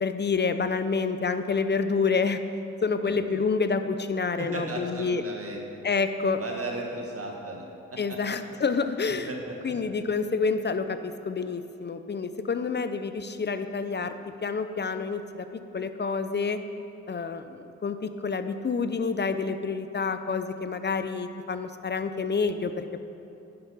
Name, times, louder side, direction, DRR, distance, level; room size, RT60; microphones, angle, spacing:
voice 1, 0.0-2.4 2.8-5.2 5.8-6.4 8.0-9.3 9.6-14.1 14.4-15.5 15.7-16.6 17.1-23.1, left 4 dB, 35° left, 10 dB, 0.6 m, -28 dB
voice 2, 3.0-3.4 4.4-5.6 6.4-7.6 7.9-8.4 9.3-9.7, right 2 dB, 45° right, 0 dB, 1.8 m, -36 dB
10.5 x 5.8 x 5.6 m, 3.0 s
cardioid pair, 55°, 31 cm